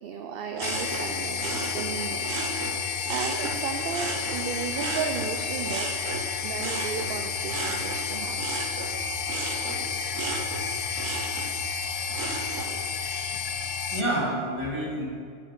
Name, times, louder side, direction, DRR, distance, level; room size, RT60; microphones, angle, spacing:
voice 1, 0.0-5.9 6.4-8.4, right 6 dB, 60° right, 5 dB, 0.7 m, -34 dB
sound 1, 0.5-3.6 3.9-12.7 13.2-13.6, right 3 dB, 85° right, 1.4 m, -35 dB
sound 2, 0.6-14.0, left 6 dB, 55° left, 0.5 m, -31 dB
voice 2, 13.1-13.4 13.9-15.1, right 1 dB, 25° right, -6 dB, 2.4 m, -29 dB
6.6 x 6.4 x 7.4 m, 2.3 s
omnidirectional pair, 1.3 m